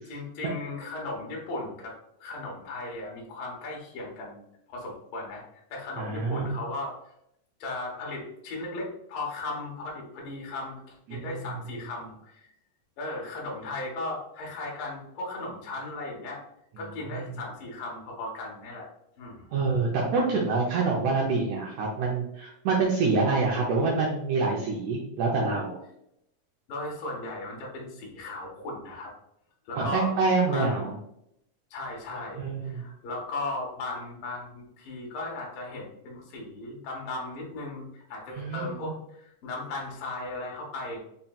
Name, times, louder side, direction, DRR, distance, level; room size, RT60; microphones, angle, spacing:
voice 1, 0.1-4.4 4.7-5.4 5.7-6.9 7.6-12.5 13.0-16.4 16.8-18.9 19.2-19.5 26.7-29.1 29.7-30.1 30.5-30.9 31.7-41.0, left 2 dB, 75° left, -2 dB, 1.2 m, -36 dB
voice 2, 6.0-6.6 11.1-11.4 17.1-17.4 19.5-25.8 29.8-31.0 32.3-32.8 38.3-38.9, right 4 dB, 80° right, -3 dB, 1.6 m, -26 dB
5.4 x 2.7 x 2.3 m, 0.78 s
omnidirectional pair, 3.9 m